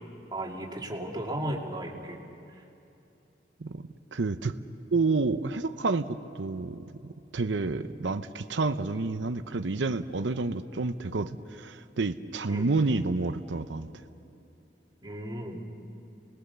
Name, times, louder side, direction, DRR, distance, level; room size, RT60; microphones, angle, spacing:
voice 1, 0.3-2.2 12.5-12.7 15.0-15.6, right 1 dB, 25° right, -1 dB, 2.5 m, -35 dB
voice 2, 4.1-4.6 4.9-13.9, right 3 dB, 80° right, 10 dB, 0.7 m, -29 dB
28.5 x 20.5 x 6.9 m, 2.8 s
head